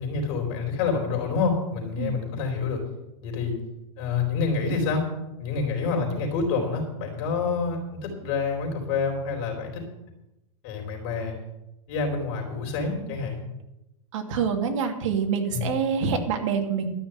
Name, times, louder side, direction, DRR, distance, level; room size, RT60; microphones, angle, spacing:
voice 1, 0.0-2.8 3.2-3.5 4.0-5.0 5.4-9.8 10.6-11.3 11.9-13.4 15.5-15.7, left 4 dB, 50° left, 1 dB, 4.0 m, -27 dB
voice 2, 14.1-16.9, right 6 dB, 65° right, 3 dB, 2.6 m, -26 dB
13.0 x 6.1 x 9.0 m, 0.93 s
supercardioid pair, 155°, 17 cm